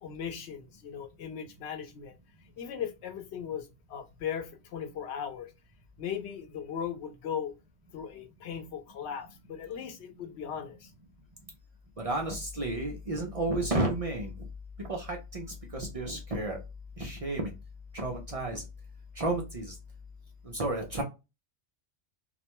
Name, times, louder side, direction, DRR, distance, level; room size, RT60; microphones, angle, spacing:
voice 1, 0.0-2.1 2.6-5.5 6.0-7.5 7.9-10.9, left 8 dB, 90° left, 0.9 m, -38 dB
voice 2, 12.0-14.3 14.9-15.4 15.7-16.6 17.0-17.5 17.9-18.6 19.2-19.7 20.5-21.0, right 2 dB, 45° right, 0.4 m, -31 dB
2.3 x 2.1 x 2.8 m
omnidirectional pair, 1.1 m